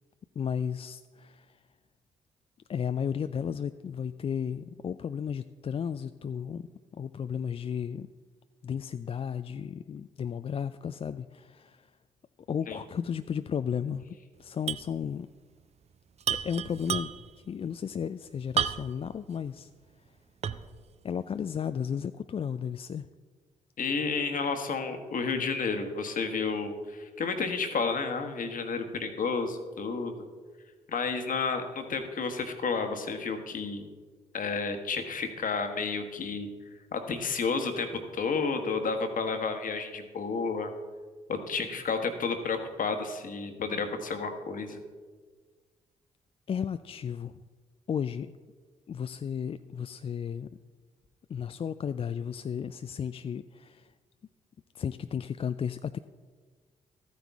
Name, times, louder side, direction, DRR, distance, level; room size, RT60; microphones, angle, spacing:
voice 1, 0.4-1.6 2.7-8.1 8.6-11.9 12.5-15.3 16.3-17.1 17.5-19.7 21.0-23.1 46.5-47.3 47.9-48.3 48.9-50.5 51.3-53.9 54.7-56.0, left 7 dB, 35° left, 11 dB, 0.3 m, -34 dB
sound 1, 14.7-14.9 15.2-15.3 16.2-17.4 18.6-19.1 19.6-19.7 20.4-20.8, right 8 dB, 40° right, 0.5 m, -31 dB
voice 2, 23.8-30.3 30.9-33.9 34.3-36.5 36.9-40.7 41.3-44.8, left 4 dB, 55° left, 6 dB, 1.3 m, -31 dB
13.0 x 9.3 x 3.6 m, 1.5 s
hypercardioid pair, 40°, 17 cm